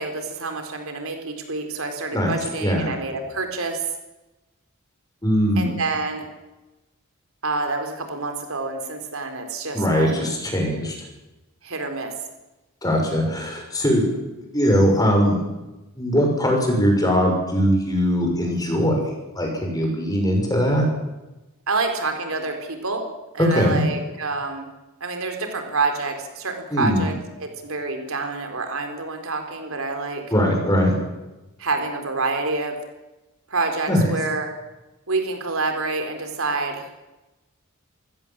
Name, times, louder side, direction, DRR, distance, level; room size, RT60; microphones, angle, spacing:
voice 1, 0.0-3.8 5.6-6.3 7.4-10.2 11.6-12.1 21.7-23.0 23.3-24.7 25.0-27.1 27.4-30.2 31.6-32.8 33.5-34.5 35.1-36.9, right 3 dB, 75° right, 5 dB, 3.8 m, -27 dB
voice 2, 5.2-5.8 9.7-11.0 12.8-14.0 14.5-15.4 16.0-20.9 23.4-23.8 26.7-27.1 30.3-30.9 33.9-34.0, equal, 20° left, 2 dB, 6.1 m, -20 dB
25.5 x 16.5 x 7.5 m, 1.0 s
head